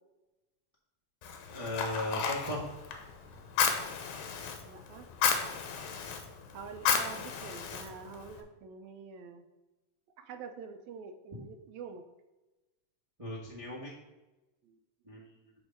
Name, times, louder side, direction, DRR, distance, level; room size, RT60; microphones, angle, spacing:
Fire, 1.2-8.4, left 6 dB, 90° left, 2.2 m, -34 dB
voice 1, 1.5-2.6 13.2-13.9 15.1-15.2, left 1 dB, 30° right, -6 dB, 0.6 m, -36 dB
voice 2, 4.6-5.1 6.5-9.5 10.2-12.1 14.6-14.8, right 5 dB, 80° right, 7 dB, 1.9 m, -46 dB
7.9 x 3.6 x 5.3 m, 1.1 s
omnidirectional pair, 3.3 m